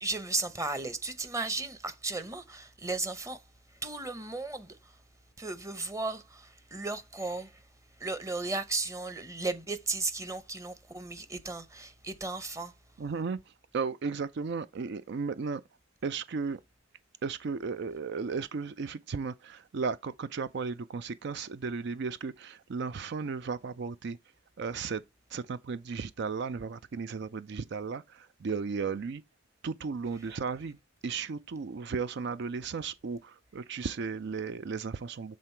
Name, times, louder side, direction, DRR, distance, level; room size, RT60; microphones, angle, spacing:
voice 1, 0.0-3.4 3.7-5.0 5.4-7.6 8.0-12.7, right 3 dB, 15° right, 0.8 m, -35 dB
voice 2, 13.0-13.4 13.7-15.6 16.0-16.6 17.2-24.2 24.6-25.0 25.3-29.2 29.6-30.8 31.0-35.4, right 5 dB, 60° right, 0.4 m, -35 dB
7.5 x 3.8 x 4.4 m
head